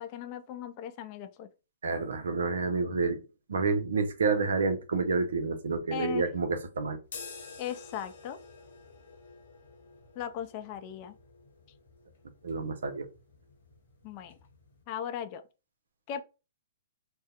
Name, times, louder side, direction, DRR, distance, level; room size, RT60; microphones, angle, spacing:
voice 1, 0.0-1.5 5.9-6.3 7.6-8.4 10.2-11.2 14.0-14.4 14.9-15.4 16.1-16.2, left 9 dB, 40° left, 0.3 m, -37 dB
voice 2, 1.8-3.2 3.5-7.0 12.4-13.1, right 4 dB, 75° right, 0.5 m, -29 dB
sound 1, 7.0-14.8, left 4 dB, 65° left, 0.8 m, -50 dB
2.7 x 2.0 x 2.3 m
hypercardioid pair, 125°, 0 cm